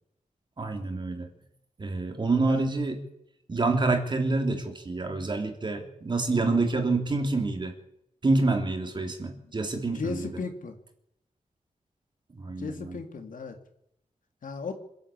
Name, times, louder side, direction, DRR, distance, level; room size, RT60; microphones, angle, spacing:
voice 1, 0.6-1.3 1.8-2.9 3.5-7.7 8.2-10.3 12.3-12.7, right 3 dB, 35° right, 5 dB, 3.3 m, -27 dB
voice 2, 9.9-10.8 12.6-13.6 14.4-14.7, left 4 dB, 80° left, 5 dB, 3.1 m, -35 dB
26.5 x 12.5 x 8.7 m, 0.78 s
wide cardioid pair, 170°, 13 cm